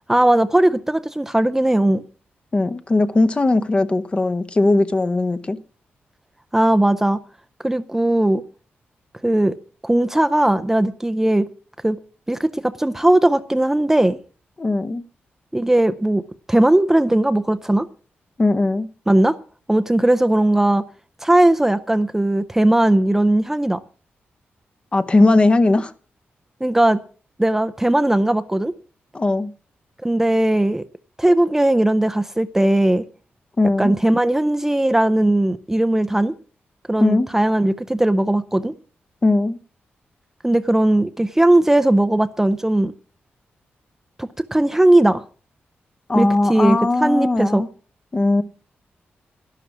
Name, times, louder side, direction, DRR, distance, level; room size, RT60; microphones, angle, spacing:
voice 1, 0.1-2.0 6.5-7.2 7.6-8.4 9.2-9.6 9.8-11.5 11.8-12.0 12.3-14.2 15.5-16.2 16.5-17.9 19.1-19.3 19.7-20.8 21.2-23.8 26.6-27.0 27.4-28.7 30.0-30.8 31.2-33.0 33.8-36.3 36.9-38.7 40.4-42.9 44.2-45.2 46.1-47.6, right 1 dB, 10° right, 0.5 m, -18 dB
voice 2, 2.5-5.6 14.6-15.0 18.4-18.9 24.9-25.9 29.1-29.5 33.6-33.9 37.0-37.3 39.2-39.6 46.1-47.7 48.1-48.4, left 2 dB, 25° left, 0.9 m, -18 dB
11.5 x 11.5 x 6.0 m
wide cardioid pair, 125°, 4 cm